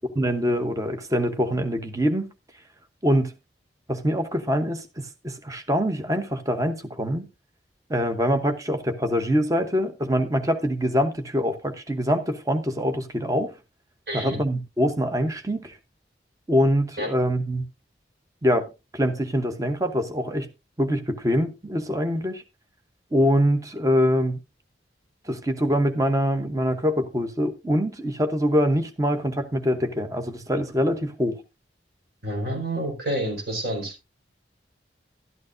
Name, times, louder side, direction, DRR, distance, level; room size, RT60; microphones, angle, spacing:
voice 1, 0.2-2.3 3.0-3.3 3.9-7.3 7.9-13.5 14.1-15.8 16.5-17.6 18.4-20.5 20.8-22.4 23.1-24.4 25.2-31.4, equal, 20° right, 0.9 m, -24 dB
voice 2, 14.1-14.4 17.0-17.1 32.2-33.9, right 1 dB, 60° right, 4.6 m, -28 dB
12.0 x 11.5 x 2.6 m
head